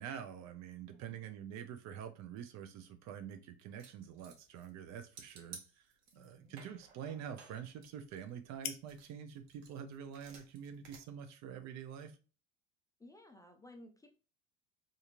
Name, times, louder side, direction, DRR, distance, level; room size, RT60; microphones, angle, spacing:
voice 1, 0.0-5.8 6.1-12.2, right 8 dB, 55° right, 8 dB, 0.6 m, -46 dB
voice 2, 0.8-1.3 6.1-6.7 13.0-14.1, left 1 dB, 10° left, 3 dB, 0.5 m, -58 dB
sound 1, 3.8-4.8 5.2-6.3 6.6-8.5 8.9-11.0, right 5 dB, 75° right, 1.0 m, -56 dB
sound 2, 4.3-12.0, left 10 dB, 75° left, 0.6 m, -54 dB
2.8 x 2.6 x 2.5 m, 0.35 s
supercardioid pair, 90°, 33 cm